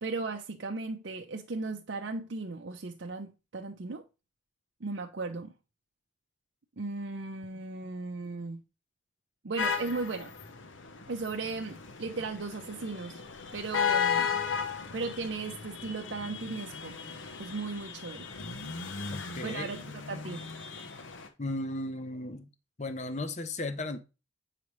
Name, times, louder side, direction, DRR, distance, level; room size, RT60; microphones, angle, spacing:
voice 1, 0.0-4.0 4.8-5.5 6.8-8.6 9.4-10.3 11.1-13.2 13.5-14.3 14.9-17.0 17.4-18.3 19.4-20.4, right 3 dB, 65° right, 0.6 m, -36 dB
sound 1, 9.6-21.3, left 6 dB, 85° left, 0.9 m, -35 dB
voice 2, 19.1-19.7 21.4-22.5 22.8-24.0, left 2 dB, 35° left, 0.7 m, -35 dB
8.4 x 4.9 x 3.1 m
head